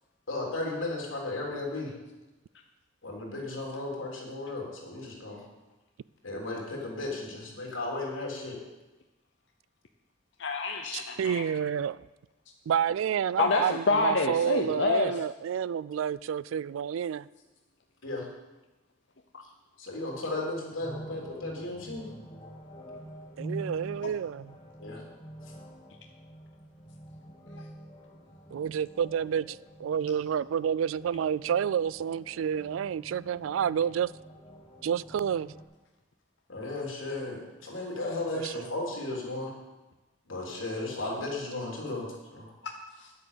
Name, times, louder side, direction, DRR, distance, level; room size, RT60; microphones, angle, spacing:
voice 1, 0.3-1.9 3.0-5.4 6.2-8.6 18.0-18.3 19.8-22.0 24.8-25.0 36.5-39.5 40.3-42.1 42.3-42.5, left 2 dB, 85° left, 3.6 m, -35 dB
voice 2, 10.4-11.4 13.4-15.1 42.6-43.1, left 3 dB, 65° left, 0.7 m, -27 dB
voice 3, 10.9-12.1 12.7-17.3 23.4-24.6 28.5-34.1 34.8-35.5 38.3-38.7, right 8 dB, 80° right, 0.3 m, -29 dB
sound 1, 20.8-35.6, right 1 dB, 20° left, 1.6 m, -46 dB
10.0 x 8.3 x 6.9 m
head